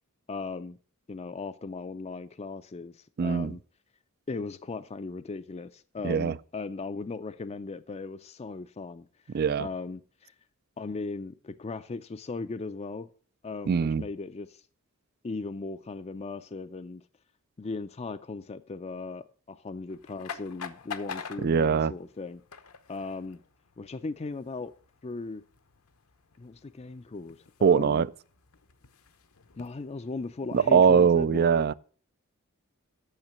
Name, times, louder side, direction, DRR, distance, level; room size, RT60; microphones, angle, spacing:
voice 1, 0.3-0.8 1.1-3.6 4.3-9.1 9.6-10.3 10.8-13.1 13.4-14.6 15.2-17.0 17.6-22.4 22.9-23.4 23.8-24.7 25.0-25.4 26.4-28.1 29.6-31.6, left 3 dB, 30° left, 0.4 m, -37 dB
voice 2, 3.2-3.5 6.0-6.4 9.3-9.7 13.7-14.0 21.4-21.9 27.6-28.1 30.5-31.7, right 6 dB, 45° right, 0.4 m, -22 dB
sound 1, 19.9-31.0, left 6 dB, 75° left, 0.9 m, -47 dB
8.9 x 6.5 x 7.5 m
head